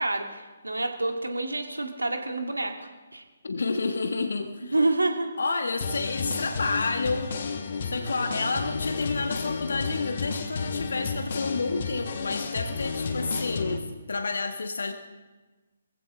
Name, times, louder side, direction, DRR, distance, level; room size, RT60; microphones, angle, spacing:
voice 1, 0.0-3.2 4.7-5.3, right 2 dB, 80° right, 4 dB, 2.0 m, -28 dB
voice 2, 3.4-4.7 5.4-7.4 7.8-14.9, left 3 dB, 65° left, 6 dB, 1.2 m, -30 dB
sound 1, 5.8-13.8, left 4 dB, 50° left, 1.6 m, -31 dB
22.5 x 15.5 x 3.7 m, 1.2 s
figure-of-eight pair, 140°, 0 cm